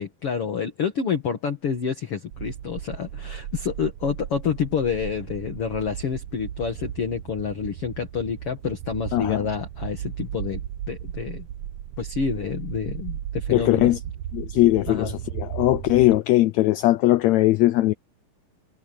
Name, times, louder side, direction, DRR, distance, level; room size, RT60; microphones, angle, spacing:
voice 1, 0.0-11.5 12.0-14.0 14.9-15.2, left 6 dB, 45° left, 2.7 m, -28 dB
sound 1, 2.3-16.2, right 11 dB, 75° right, 1.5 m, -35 dB
voice 2, 13.5-14.0 14.3-15.1 15.4-17.9, left 17 dB, 90° left, 1.5 m, -19 dB
omnidirectional pair, 3.9 m